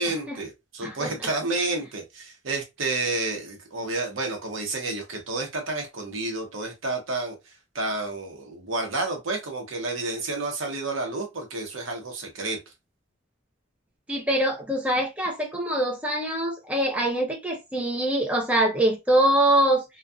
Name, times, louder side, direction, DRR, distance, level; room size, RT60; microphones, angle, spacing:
voice 1, 0.0-12.6, right 2 dB, 85° right, 0.9 m, -30 dB
voice 2, 14.1-19.8, right 1 dB, 5° right, 0.6 m, -24 dB
2.6 x 2.4 x 2.3 m
head